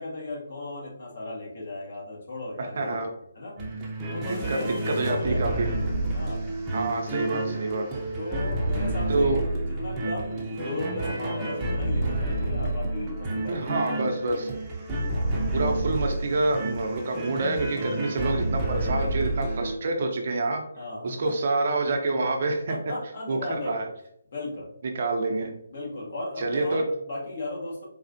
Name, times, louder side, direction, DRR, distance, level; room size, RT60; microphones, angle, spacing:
voice 1, 0.0-3.0 3.3-3.6 4.1-5.6 6.1-6.5 8.1-14.0 20.8-21.3 22.7-23.9 24.3-24.7 25.7-27.9, left 2 dB, 55° left, -3 dB, 1.3 m, -36 dB
voice 2, 2.6-3.1 4.5-4.6 4.9-5.7 6.7-7.8 9.1-9.4 13.5-14.5 15.5-20.6 21.0-22.7 23.3-23.9 24.8-25.5 26.4-26.8, right 2 dB, 50° right, 3 dB, 0.6 m, -27 dB
sound 1, 3.6-19.8, right 1 dB, 15° right, 0.7 m, -29 dB
4.2 x 2.3 x 2.6 m, 0.74 s
figure-of-eight pair, 150°, 0 cm